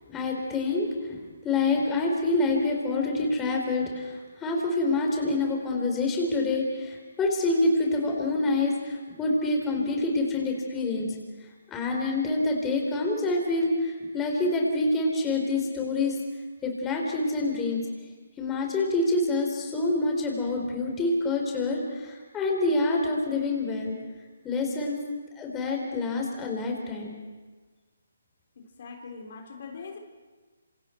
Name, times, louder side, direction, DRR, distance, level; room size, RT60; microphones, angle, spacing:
voice 1, 0.1-16.2 16.6-17.8 18.4-24.0 24.4-25.0 25.4-27.2, left 2 dB, 15° left, 1 dB, 4.0 m, -27 dB
voice 2, 28.6-30.0, left 5 dB, 50° left, 3 dB, 3.7 m, -42 dB
27.5 x 26.5 x 4.5 m, 1.3 s
hypercardioid pair, 150°, 0 cm